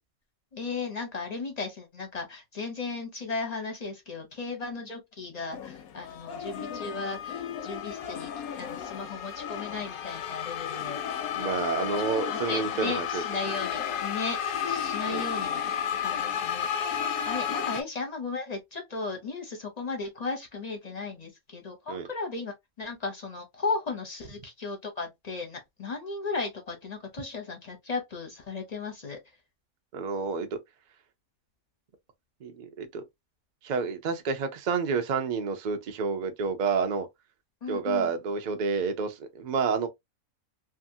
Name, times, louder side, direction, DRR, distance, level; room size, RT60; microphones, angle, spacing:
voice 1, 0.5-8.3 8.6-11.9 12.2-15.6 16.0-29.2 37.6-38.1, left 4 dB, 40° left, 0.6 m, -36 dB
sound 1, 5.5-17.8, left 8 dB, 85° left, 1.1 m, -32 dB
voice 2, 11.4-13.2 15.1-15.2 21.9-22.1 29.9-30.5 32.4-33.0 33.6-37.1 37.7-39.9, right 5 dB, 80° right, 0.4 m, -29 dB
2.7 x 2.4 x 2.6 m
omnidirectional pair, 1.5 m